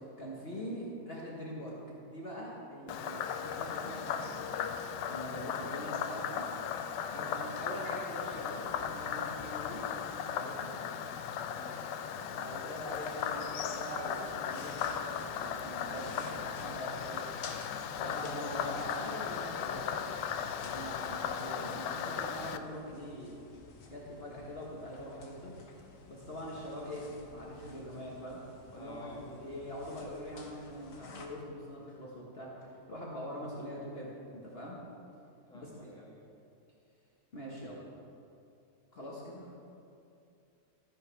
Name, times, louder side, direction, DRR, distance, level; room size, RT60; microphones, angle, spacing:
voice 1, 0.0-1.7 2.0-6.5 7.1-9.8 10.3-10.7 12.1-17.2 18.0-20.2 20.5-23.4 23.9-25.6 26.1-28.4 28.7-34.8 35.5-35.9 37.3-37.8 38.9-39.5, equal, 40° left, -5 dB, 1.5 m, -43 dB
Frog, 2.9-22.6, left 8 dB, 90° left, 1.2 m, -37 dB
voice 2, 7.1-7.5 10.9-11.8 28.7-29.3 35.5-36.2, left 1 dB, 5° left, -4 dB, 1.5 m, -51 dB
sound 1, 12.8-31.2, left 3 dB, 55° left, 1.4 m, -53 dB
13.5 x 10.5 x 3.4 m, 2.6 s
omnidirectional pair, 1.8 m